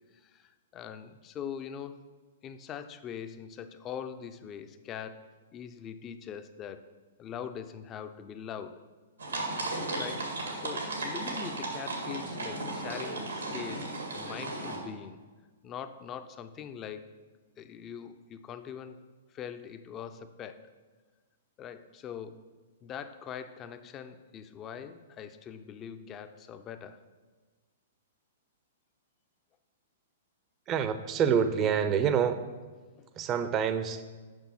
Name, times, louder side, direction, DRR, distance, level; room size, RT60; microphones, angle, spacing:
voice 1, 0.1-2.0 2.4-5.2 5.5-6.9 7.2-8.8 9.9-15.2 15.6-17.1 17.6-19.0 19.3-20.6 21.6-22.4 22.8-27.0 33.0-33.1, left 8 dB, 30° left, 10 dB, 0.5 m, -42 dB
sound 1, 9.2-14.8, right 2 dB, 90° right, 1.8 m, -35 dB
voice 2, 30.7-32.4 33.2-34.0, right 7 dB, 30° right, 11 dB, 0.6 m, -27 dB
6.2 x 5.8 x 5.6 m, 1.3 s
hypercardioid pair, 120°, 0 cm